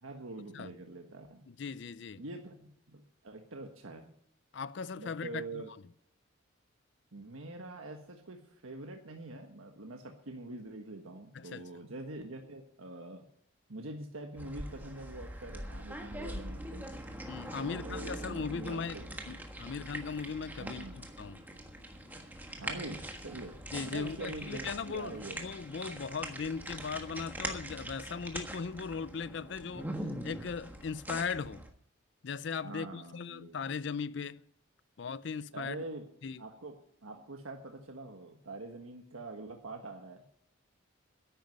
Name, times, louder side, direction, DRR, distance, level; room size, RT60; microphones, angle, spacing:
voice 1, 0.0-1.4 2.2-4.1 5.0-5.7 7.1-13.2 13.7-16.9 17.5-19.0 20.6-21.0 22.6-23.6 23.9-25.4 32.6-33.6 35.5-36.1 36.4-36.7 37.0-40.3, right 2 dB, 85° right, 1.4 m, -44 dB
voice 2, 1.5-2.2 4.5-5.6 11.3-11.6 17.3-19.0 19.3-21.5 23.7-31.6 32.2-34.4 35.0-35.8 36.2-36.5, left 5 dB, 55° left, 0.4 m, -38 dB
sound 1, 14.4-31.7, right 1 dB, 10° right, 1.4 m, -43 dB
10.5 x 9.0 x 9.3 m
head